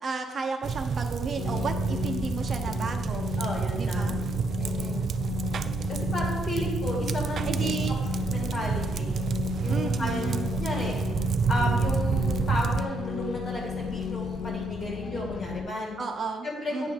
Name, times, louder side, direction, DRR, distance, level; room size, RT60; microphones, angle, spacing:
voice 1, 0.0-3.2 3.7-4.2 5.3-5.4 7.4-8.0 9.7-10.5 16.0-16.9, right 5 dB, 40° right, 3 dB, 0.8 m, -33 dB
sound 1, 0.6-12.8, right 6 dB, 55° right, 0.3 m, -29 dB
sound 2, 1.4-15.6, left 6 dB, 75° left, 0.7 m, -34 dB
voice 2, 3.4-4.3 4.6-5.1 5.9-7.7 8.3-9.2 9.6-11.0 11.5-15.9 16.4-16.9, left 1 dB, 45° left, -2 dB, 2.1 m, -33 dB
8.7 x 3.2 x 5.1 m, 1.3 s
cardioid pair, 80°, 0 cm